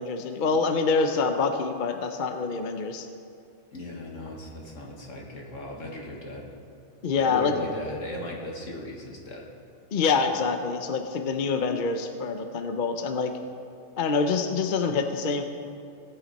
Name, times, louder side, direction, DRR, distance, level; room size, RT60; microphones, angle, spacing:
voice 1, 0.0-3.1 7.0-7.5 9.9-13.3 14.0-15.4, left 4 dB, 45° left, 7 dB, 0.7 m, -26 dB
voice 2, 3.7-6.5 7.1-9.5, left 1 dB, 65° left, -1 dB, 2.1 m, -37 dB
18.5 x 9.2 x 4.1 m, 2.4 s
omnidirectional pair, 1.4 m